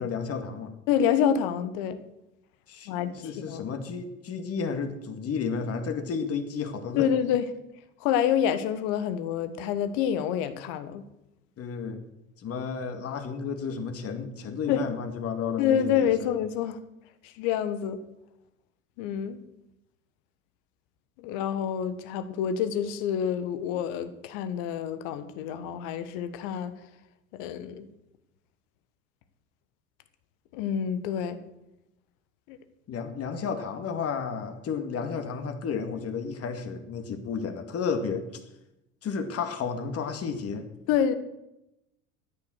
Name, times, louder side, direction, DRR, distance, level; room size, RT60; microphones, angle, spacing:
voice 1, 0.0-0.8 2.7-7.1 11.6-12.0 12.4-16.3 32.9-38.3 39.0-40.7, left 5 dB, 35° left, 2.1 m, -32 dB
voice 2, 0.9-2.0 2.9-3.1 3.5-3.7 7.0-7.4 8.0-11.0 14.7-14.8 15.6-16.8 17.2-18.0 19.0-19.4 21.2-26.7 27.3-27.9 30.5-31.4 32.5-32.6 40.9-41.1, left 9 dB, 55° left, 1.5 m, -27 dB
13.5 x 10.0 x 6.4 m
figure-of-eight pair, 75°, 40 cm